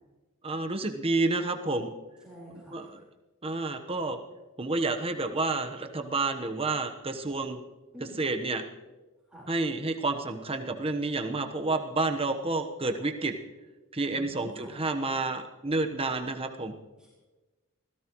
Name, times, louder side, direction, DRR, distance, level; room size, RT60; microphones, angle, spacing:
voice 1, 0.4-1.9 2.7-3.0 3.4-4.2 4.6-7.6 8.2-8.6 9.5-13.3 13.9-16.7, right 3 dB, 25° right, 6 dB, 1.1 m, -29 dB
voice 2, 2.2-2.9 7.9-8.2 9.3-9.5 14.1-14.8 17.0-17.1, equal, 5° right, -6 dB, 4.3 m, -48 dB
25.0 x 16.5 x 3.1 m, 1.2 s
head